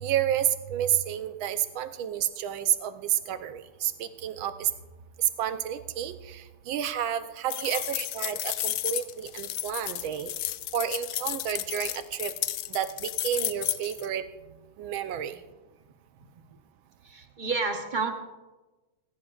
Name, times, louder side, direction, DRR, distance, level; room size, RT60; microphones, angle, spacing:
voice 1, 0.0-4.7 5.4-6.4 6.7-10.3 10.7-12.3 12.7-14.2 14.8-15.4, right 10 dB, 80° right, 10 dB, 1.5 m, -30 dB
sound 1, 7.5-14.1, left 14 dB, 75° left, 1.0 m, -32 dB
voice 2, 17.0-18.1, right 4 dB, 40° right, 4 dB, 0.7 m, -30 dB
20.0 x 16.5 x 2.4 m, 1.2 s
omnidirectional pair, 2.2 m